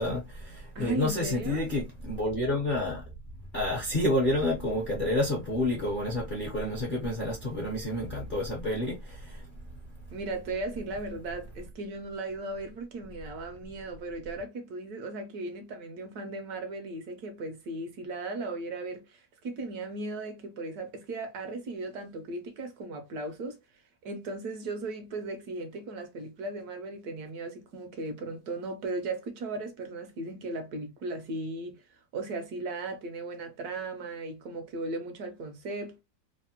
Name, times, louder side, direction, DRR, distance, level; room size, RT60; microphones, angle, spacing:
voice 1, 0.0-3.0 3.5-9.4, left 1 dB, 55° left, 0.5 m, -29 dB
voice 2, 0.7-1.7 10.1-23.6 24.0-36.0, right 2 dB, 70° right, 1.1 m, -37 dB
3.3 x 2.1 x 2.7 m
omnidirectional pair, 1.9 m